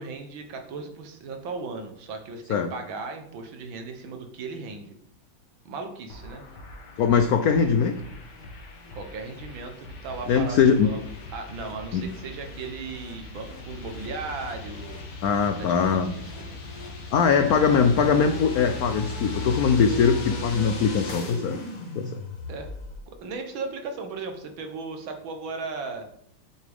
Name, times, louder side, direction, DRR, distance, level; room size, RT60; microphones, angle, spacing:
voice 1, 0.0-5.0 5.7-6.4 8.9-11.0 11.3-15.0 15.6-16.6 22.5-22.7 23.1-26.1, right 4 dB, 70° right, 5 dB, 1.8 m, -37 dB
sound 1, 6.1-23.0, left 3 dB, 55° left, 1.9 m, -38 dB
voice 2, 7.0-7.9 10.3-10.9 11.9-12.1 15.2-16.1 17.1-21.6 21.9-22.1, left 6 dB, 75° left, 7 dB, 0.8 m, -21 dB
8.3 x 7.4 x 3.5 m, 0.70 s
omnidirectional pair, 2.2 m